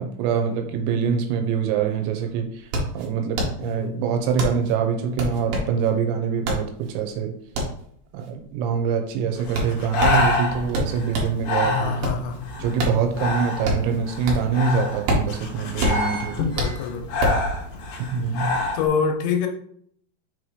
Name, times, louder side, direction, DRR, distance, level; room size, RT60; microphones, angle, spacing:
voice 1, 0.0-2.5 2.9-7.3 8.1-12.0 12.6-16.4 18.1-18.6, right 6 dB, 80° right, 5 dB, 3.1 m, -24 dB
sound 1, 1.8-1.9 2.1-11.4 11.8-14.6 14.9-17.5, equal, 65° right, 2.6 m, -27 dB
voice 2, 3.6-4.0 11.6-12.5 16.4-17.2 18.3-19.5, left 6 dB, 90° left, 3 dB, 3.0 m, -27 dB
Breathing, 9.4-18.9, left 2 dB, 65° left, 2.5 m, -27 dB
sound 2, 15.7-17.3 17.7-17.8, right 9 dB, 10° right, 1.1 m, -39 dB
6.7 x 3.1 x 4.8 m, 0.63 s
omnidirectional pair, 5.3 m